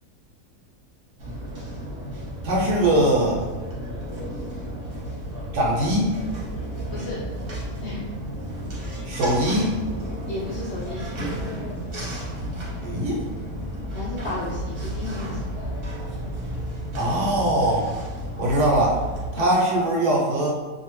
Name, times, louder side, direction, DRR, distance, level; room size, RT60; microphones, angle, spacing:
sound 1, 1.2-19.3, equal, 45° right, 0.8 m, -32 dB
voice 1, 2.4-3.4 5.5-6.2 9.0-9.7 12.8-13.2 17.0-17.9 18.4-19.0 19.3-20.5, right 1 dB, 85° right, -3 dB, 1.2 m, -21 dB
voice 2, 7.8-8.1 10.3-11.1 13.9-15.7 19.4-19.5, left 1 dB, 85° left, -6 dB, 0.6 m, -33 dB
2.7 x 2.4 x 3.0 m, 1.4 s
omnidirectional pair, 1.7 m